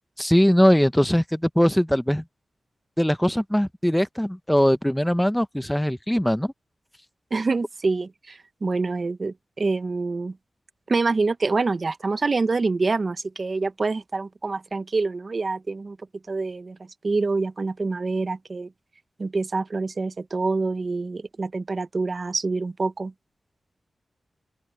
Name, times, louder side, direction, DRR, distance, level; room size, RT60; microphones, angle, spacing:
voice 1, 0.2-2.2 3.0-6.5, equal, 5° left, 0.6 m, -21 dB
voice 2, 7.3-10.4 10.9-16.0 16.3-16.8 17.0-18.7 19.2-23.1, right 3 dB, 40° right, 0.7 m, -26 dB
open air
wide cardioid pair, 130°, 0 cm